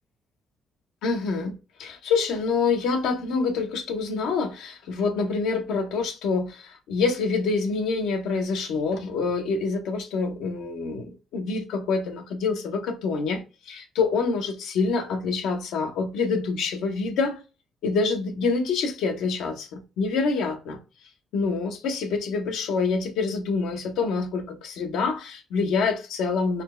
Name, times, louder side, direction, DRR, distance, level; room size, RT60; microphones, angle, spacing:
voice 1, 1.0-1.5 1.8-17.4 17.8-20.8 21.3-26.6, left 4 dB, 90° left, 0.7 m, -26 dB
4.2 x 2.2 x 3.0 m
cardioid pair, 90°, 0 cm